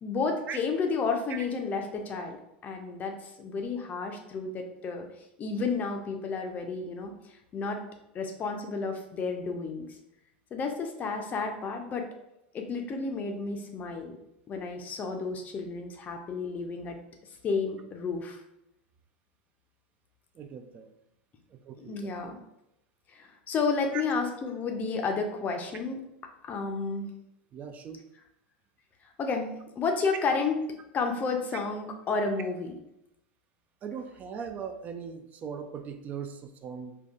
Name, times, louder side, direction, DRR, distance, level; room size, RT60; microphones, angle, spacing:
voice 1, 0.0-2.4 2.6-5.1 5.4-7.8 8.1-9.9 10.5-12.1 12.5-14.2 14.5-17.0 17.4-18.4 21.8-22.4 23.1-26.0 26.4-27.1 29.2-30.6 30.9-32.7, left 4 dB, 30° left, 3 dB, 0.5 m, -31 dB
voice 2, 20.3-20.9 21.5-22.1 23.9-24.0 27.5-28.0 33.8-37.0, right 7 dB, 30° right, 7 dB, 0.3 m, -39 dB
4.4 x 2.3 x 2.4 m, 0.84 s
figure-of-eight pair, 90°, 6 cm